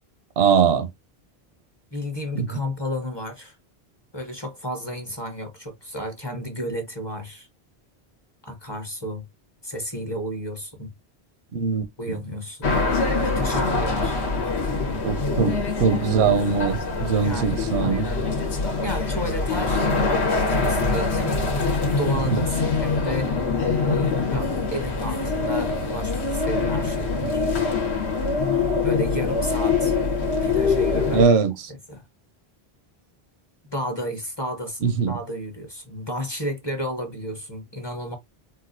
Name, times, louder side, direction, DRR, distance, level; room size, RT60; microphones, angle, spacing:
voice 1, 0.4-0.9 2.3-2.6 11.5-12.1 15.0-18.1 22.1-22.4 31.1-31.7 34.8-35.2, right 6 dB, 80° right, 0.9 m, -22 dB
voice 2, 1.9-3.6 4.1-7.5 8.4-9.2 9.6-10.9 12.0-12.8 13.1-14.2 17.2-18.3 18.8-21.4 21.7-23.4 23.9-27.5 28.8-30.0 30.4-31.3 31.9-32.0 33.7-38.2, equal, 25° left, 0.8 m, -32 dB
sound 1, 12.6-31.2, left 4 dB, 85° left, 1.3 m, -24 dB
4.0 x 2.3 x 2.5 m
omnidirectional pair, 1.1 m